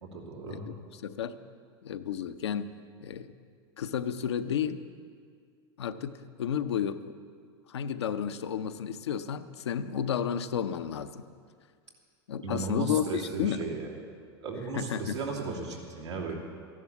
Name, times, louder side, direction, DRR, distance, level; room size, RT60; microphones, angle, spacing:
voice 1, 0.0-0.7 12.4-13.9 14.4-16.4, right 3 dB, 90° right, -3 dB, 2.9 m, -35 dB
voice 2, 1.0-1.4 1.8-2.7 3.0-3.3 3.8-4.8 5.8-7.1 7.7-11.2 12.3-13.7 14.7-15.2, left 8 dB, 80° left, 9 dB, 0.7 m, -32 dB
14.0 x 11.0 x 7.1 m, 2.1 s
hypercardioid pair, 95°, 14 cm